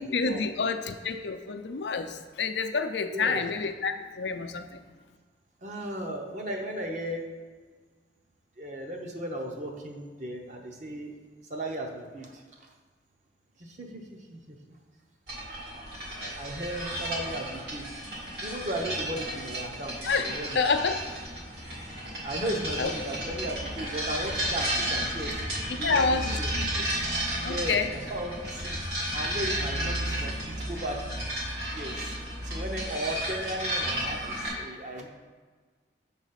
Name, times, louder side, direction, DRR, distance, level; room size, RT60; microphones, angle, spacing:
voice 1, 0.0-4.8 20.0-21.0 22.8-22.9 25.7-26.9 27.4-27.9, left 4 dB, 80° left, 8 dB, 0.5 m, -29 dB
voice 2, 3.1-3.4 5.6-7.2 8.6-11.1 11.5-12.7 13.6-14.6 16.3-17.8 18.4-20.6 22.2-25.4 25.8-26.5 27.4-28.8 29.1-31.2 31.6-32.1 32.4-35.1, right 1 dB, 40° right, 1 dB, 0.8 m, -36 dB
sound 1, 15.3-34.5, right 1 dB, 70° right, 2.1 m, -33 dB
7.1 x 4.0 x 5.8 m, 1.5 s
head